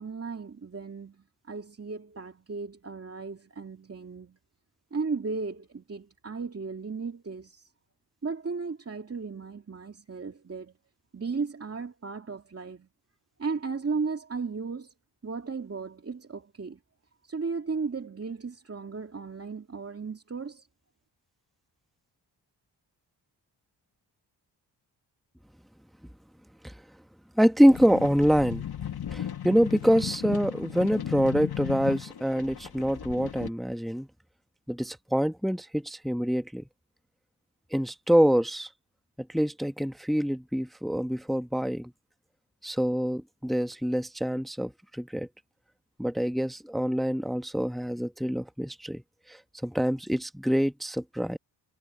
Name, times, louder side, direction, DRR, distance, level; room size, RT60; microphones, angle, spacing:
voice 1, 0.0-4.4 4.9-7.7 8.2-10.7 11.1-12.9 13.4-14.9 15.2-16.8 17.2-20.7, right 4 dB, 35° right, 2.4 m, -35 dB
voice 2, 27.4-28.6 29.1-34.1 34.7-36.6 37.7-38.7 39.2-41.9 42.6-45.3 46.0-49.0 49.3-51.4, equal, ahead, 1.3 m, -26 dB
sound 1, 27.7-33.5, left 10 dB, 60° left, 2.2 m, -36 dB
cardioid pair, 65°, 42 cm